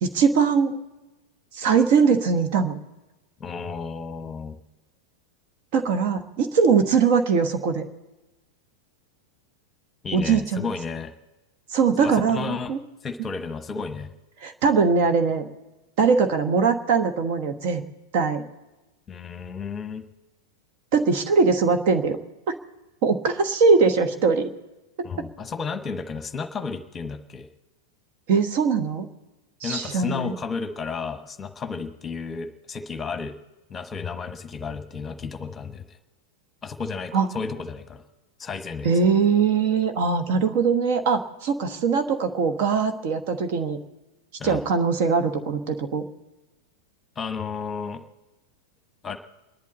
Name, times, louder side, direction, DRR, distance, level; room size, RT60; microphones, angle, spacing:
voice 1, 0.0-0.8 1.5-2.7 5.7-7.8 10.1-10.7 11.7-12.8 14.4-15.5 16.0-17.8 18.1-18.4 20.9-22.2 22.5-22.6 23.0-24.5 25.0-25.1 28.3-29.1 29.6-30.3 37.1-37.3 38.8-43.8 44.4-46.0, right 5 dB, 45° right, 8 dB, 1.2 m, -21 dB
voice 2, 3.4-4.5 10.0-11.1 12.0-12.7 13.0-14.1 19.1-20.0 25.0-27.5 29.6-33.4 33.7-36.0 36.6-38.0 38.4-38.9 44.4-44.7 47.2-48.0 49.0-49.2, left 5 dB, 20° left, 9 dB, 1.1 m, -32 dB
29.0 x 11.0 x 4.2 m, 1.1 s
figure-of-eight pair, 90°, 0 cm